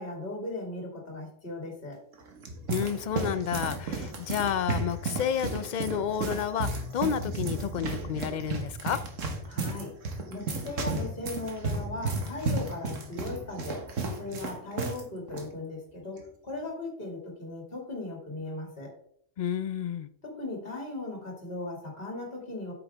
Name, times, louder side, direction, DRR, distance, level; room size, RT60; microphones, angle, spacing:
voice 1, 0.0-2.0 9.5-9.9 10.3-13.8 14.2-18.9 20.2-22.7, left 2 dB, 45° left, -1 dB, 2.6 m, -38 dB
sound 1, 2.1-15.0 15.3-15.5 16.2-16.5, right 3 dB, 80° right, 1.7 m, -33 dB
voice 2, 2.7-9.0 19.4-20.1, left 8 dB, 65° left, 13 dB, 0.4 m, -30 dB
8.7 x 6.8 x 3.4 m, 0.66 s
omnidirectional pair, 1.3 m